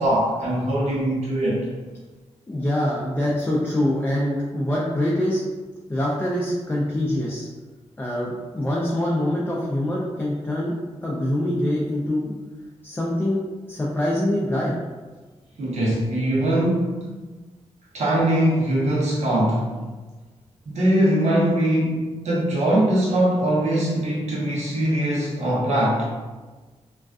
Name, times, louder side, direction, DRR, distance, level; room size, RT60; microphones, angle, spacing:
voice 1, 0.0-1.6 15.6-17.0 17.9-19.7 20.7-26.1, right 1 dB, 75° right, -6 dB, 0.8 m, -21 dB
voice 2, 2.5-5.4 5.9-7.5 8.0-10.7 11.0-12.3 12.8-13.4 13.7-14.8, left 1 dB, 15° left, -5 dB, 0.4 m, -24 dB
2.3 x 2.3 x 2.3 m, 1.3 s
cardioid pair, 100°, 12 cm